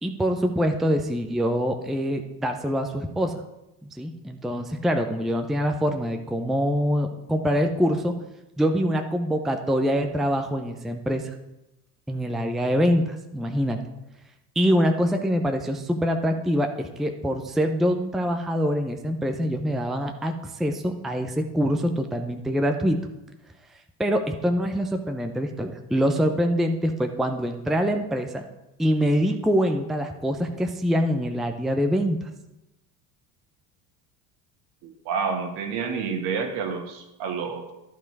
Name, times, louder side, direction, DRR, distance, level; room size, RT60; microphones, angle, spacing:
voice 1, 0.0-3.4 3.8-8.1 8.6-11.3 12.1-13.8 14.6-23.0 24.0-28.5 28.8-32.2, equal, ahead, 5 dB, 0.6 m, -24 dB
voice 2, 34.8-37.7, right 5 dB, 55° right, 5 dB, 1.7 m, -29 dB
12.0 x 5.2 x 4.7 m, 0.93 s
figure-of-eight pair, 70°, 48 cm